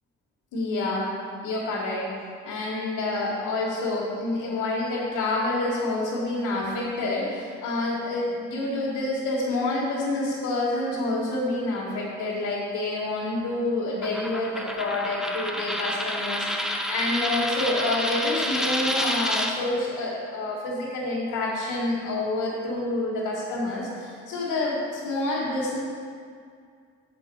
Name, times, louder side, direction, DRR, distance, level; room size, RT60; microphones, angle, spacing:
voice 1, 0.5-1.1 1.4-2.1 2.4-25.8, left 2 dB, 85° left, -8 dB, 1.7 m, -28 dB
Coin (dropping), 14.0-19.5, equal, ahead, 0.7 m, -29 dB
6.8 x 5.3 x 6.8 m, 2.2 s
cardioid pair, 90°, 30 cm